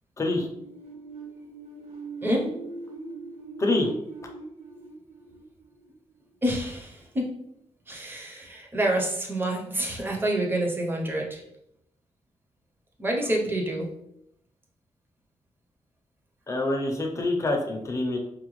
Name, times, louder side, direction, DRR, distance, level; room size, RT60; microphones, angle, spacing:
voice 1, 0.2-0.5 3.6-3.9 16.5-18.2, left 2 dB, 25° left, 2 dB, 0.5 m, -26 dB
sound 1, 0.5-6.2, right 3 dB, 55° right, 1.0 m, -41 dB
voice 2, 6.4-7.2 7.9-11.4 13.0-13.9, right 1 dB, 15° right, 0 dB, 0.6 m, -27 dB
4.9 x 2.2 x 3.0 m, 0.78 s
wide cardioid pair, 175°, 12 cm